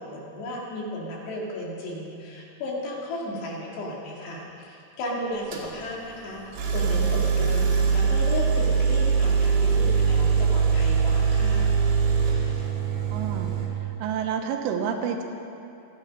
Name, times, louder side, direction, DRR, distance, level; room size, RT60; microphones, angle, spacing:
voice 1, 0.0-11.8, left 1 dB, 65° left, -3 dB, 4.4 m, -34 dB
sound 1, 5.5-5.7 6.5-13.7, right 5 dB, 65° right, 4.0 m, -22 dB
voice 2, 13.1-13.5 14.0-15.2, right 7 dB, 85° right, 4 dB, 3.6 m, -28 dB
27.5 x 9.3 x 5.6 m, 2.7 s
omnidirectional pair, 5.6 m